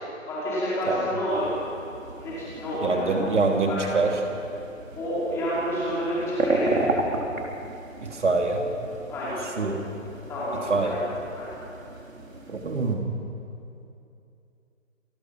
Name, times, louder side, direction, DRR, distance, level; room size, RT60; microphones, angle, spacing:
voice 1, 0.3-1.5 2.2-3.2 3.7-3.8 4.9-6.9 9.1-9.4 10.3-11.0 11.3-11.5, equal, 5° left, -10 dB, 5.3 m, -29 dB
sound 1, 1.3-12.9, right 2 dB, 85° right, 4.8 m, -34 dB
voice 2, 2.8-4.2 8.0-8.6 9.6-9.8 10.7-11.0 12.5-13.1, right 3 dB, 60° right, 2 dB, 3.0 m, -25 dB
28.0 x 21.5 x 6.3 m, 2.7 s
hypercardioid pair, 170°, 39 cm